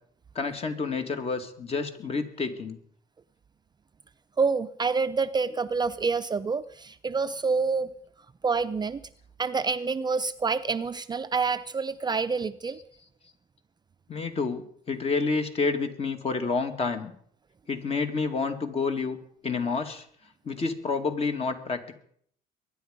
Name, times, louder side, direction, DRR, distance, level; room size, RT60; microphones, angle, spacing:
voice 1, 0.3-2.8 14.1-17.1 17.7-19.2 19.4-20.1 20.4-22.0, left 4 dB, 35° left, 6 dB, 2.3 m, -29 dB
voice 2, 4.4-7.9 8.4-9.0 9.4-12.8, right 4 dB, 25° right, 11 dB, 0.5 m, -27 dB
22.5 x 10.0 x 5.3 m, 0.62 s
cardioid pair, 110°, 17 cm